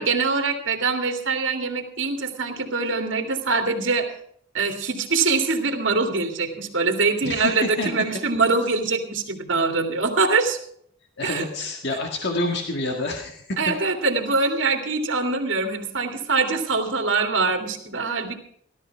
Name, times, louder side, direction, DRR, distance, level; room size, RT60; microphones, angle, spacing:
voice 1, 0.0-4.1 4.5-10.6 11.2-11.5 13.6-18.3, right 4 dB, 65° right, 4 dB, 2.5 m, -23 dB
voice 2, 7.2-7.9 11.2-13.6, left 2 dB, 55° left, 2 dB, 1.8 m, -28 dB
17.0 x 12.5 x 4.7 m, 0.67 s
head